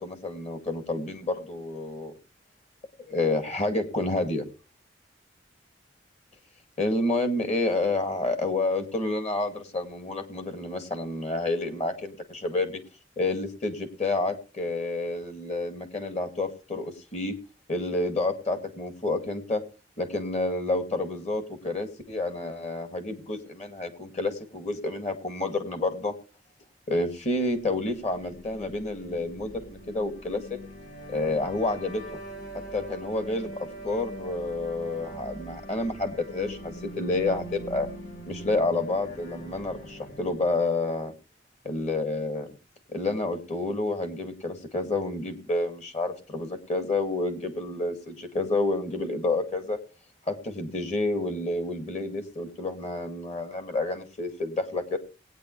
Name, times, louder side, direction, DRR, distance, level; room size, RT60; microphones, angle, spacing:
voice 1, 0.0-2.1 3.0-4.4 6.8-12.8 13.2-17.3 17.7-19.6 20.0-26.1 26.9-30.6 31.1-32.2 32.7-33.5 33.8-37.9 38.3-41.1 41.6-42.5 42.9-49.8 50.3-55.0, left 2 dB, 35° left, 7 dB, 2.2 m, -29 dB
sound 1, 27.6-40.6, right 1 dB, 50° left, 6.3 m, -42 dB
19.5 x 9.3 x 3.2 m, 0.31 s
head